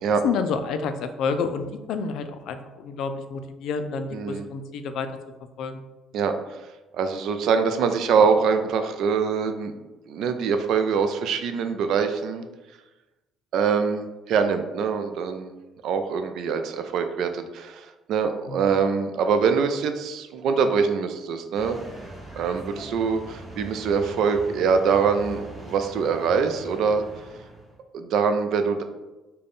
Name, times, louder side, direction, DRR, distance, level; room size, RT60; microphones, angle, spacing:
voice 1, 0.2-5.1 5.6-5.8 18.5-18.7, left 5 dB, 65° left, 8 dB, 0.3 m, -29 dB
voice 2, 4.1-4.5 6.1-6.6 6.9-9.7 10.1-12.5 13.5-15.5 15.8-21.8 22.4-27.0 27.9-28.8, right 6 dB, 60° right, 7 dB, 0.3 m, -24 dB
sound 1, 21.5-27.8, right 1 dB, 15° right, 0.7 m, -41 dB
3.8 x 2.2 x 3.4 m, 1.1 s
cardioid pair, 150°, 0 cm